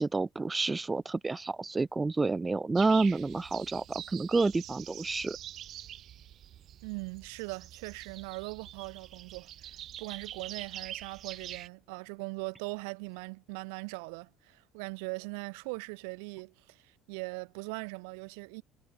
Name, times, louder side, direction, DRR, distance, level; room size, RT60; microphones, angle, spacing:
voice 1, 0.0-5.4, right 3 dB, 20° right, 0.4 m, -29 dB
sound 1, 2.8-11.7, right 11 dB, 55° right, 1.8 m, -45 dB
voice 2, 6.8-18.6, right 35 dB, 90° right, 3.0 m, -40 dB
supercardioid pair, 100°, 0 cm